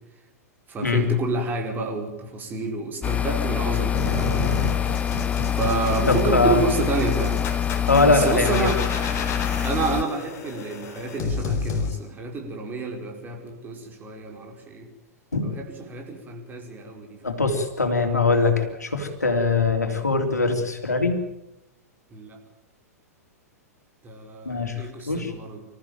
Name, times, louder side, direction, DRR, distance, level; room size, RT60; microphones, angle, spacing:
voice 1, 0.7-4.6 5.5-7.4 8.0-8.8 9.6-14.9 15.4-17.4 22.1-22.4 24.0-25.7, right 3 dB, 20° right, 1 dB, 5.2 m, -29 dB
sound 1, 3.0-10.0, left 9 dB, 15° left, 0.9 m, -25 dB
sound 2, 3.9-11.9, left 4 dB, 35° left, 4.0 m, -30 dB
voice 2, 6.1-6.6 7.9-8.7 15.3-15.5 17.2-21.2 24.4-25.3, left 3 dB, 80° left, 5 dB, 3.3 m, -22 dB
26.5 x 14.5 x 9.1 m, 0.92 s
figure-of-eight pair, 100°, 9 cm